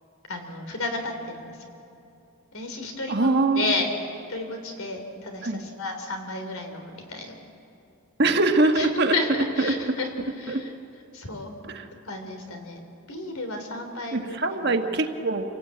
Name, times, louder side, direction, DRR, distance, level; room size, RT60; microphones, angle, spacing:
voice 1, 0.3-1.6 2.5-3.9 4.3-7.4 8.8-8.9 9.1-10.1 10.4-10.7 11.1-11.5 12.1-12.8 13.1-14.8, left 2 dB, 75° left, 5 dB, 3.5 m, -32 dB
voice 2, 3.1-3.7 5.4-5.6 8.2-9.2 9.6-9.7 10.5-10.6 11.6-11.9 14.1-15.6, right 2 dB, 50° right, 5 dB, 1.5 m, -23 dB
28.0 x 18.0 x 8.7 m, 2.8 s
head